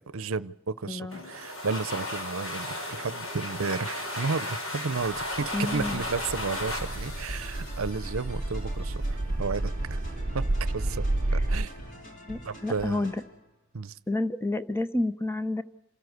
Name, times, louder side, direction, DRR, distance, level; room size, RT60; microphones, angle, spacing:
voice 1, 0.0-10.0 10.3-11.0 11.3-11.7 12.4-13.1 13.7-14.0, right 4 dB, 70° right, 0.7 m, -33 dB
voice 2, 0.9-1.2 5.5-6.0 11.3-11.5 12.2-13.2 14.1-15.6, left 2 dB, 10° left, 0.8 m, -30 dB
sound 1, 1.1-8.6, left 1 dB, 65° left, 5.3 m, -35 dB
sound 2, 5.2-11.7, right 2 dB, 40° right, 0.7 m, -31 dB
sound 3, 5.6-13.5, equal, 40° left, 3.7 m, -45 dB
28.5 x 13.5 x 9.4 m
head